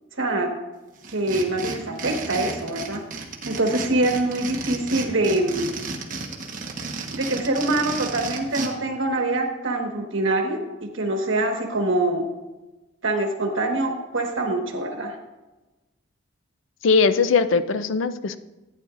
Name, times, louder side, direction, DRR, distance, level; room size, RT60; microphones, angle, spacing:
voice 1, 0.2-0.5 1.1-3.0 3.4-5.7 7.1-12.3 13.0-15.2, right 2 dB, 75° right, 3 dB, 1.5 m, -24 dB
sound 1, 1.0-8.7, right 4 dB, 40° right, 1.3 m, -33 dB
voice 2, 16.8-18.4, left 4 dB, 80° left, 12 dB, 0.5 m, -20 dB
15.0 x 9.2 x 2.5 m, 1.1 s
head